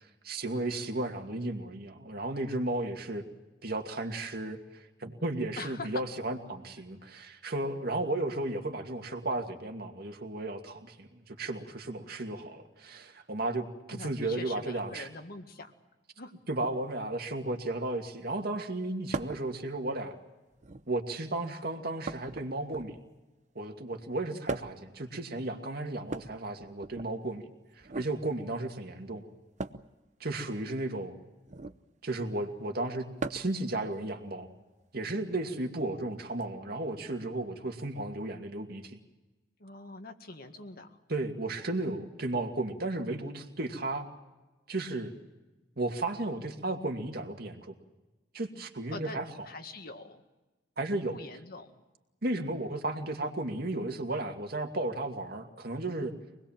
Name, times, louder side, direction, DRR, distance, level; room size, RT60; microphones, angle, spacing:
voice 1, 0.2-3.2 3.6-15.1 16.5-20.2 20.9-23.0 23.5-29.2 30.2-31.1 32.0-33.0 33.3-34.5 34.9-39.0 41.1-44.1 44.7-45.1 45.8-47.7 48.3-49.3 50.8-51.2 52.2-56.1, right 2 dB, 55° right, 4 dB, 2.4 m, -34 dB
voice 2, 5.6-6.0 13.9-15.7 16.2-16.3 39.6-41.0 48.9-49.2 49.4-50.2 51.1-51.7, left 3 dB, 55° left, 6 dB, 1.9 m, -43 dB
sound 1, 19.1-19.5 20.5-21.0 22.0-23.1 24.5-24.9 26.0-27.1 27.8-28.1 29.6-29.9 31.5-31.8 33.2-33.6 35.1-35.2 36.4-36.5, right 3 dB, 40° right, 0.8 m, -38 dB
25.5 x 20.0 x 7.4 m, 1.1 s
head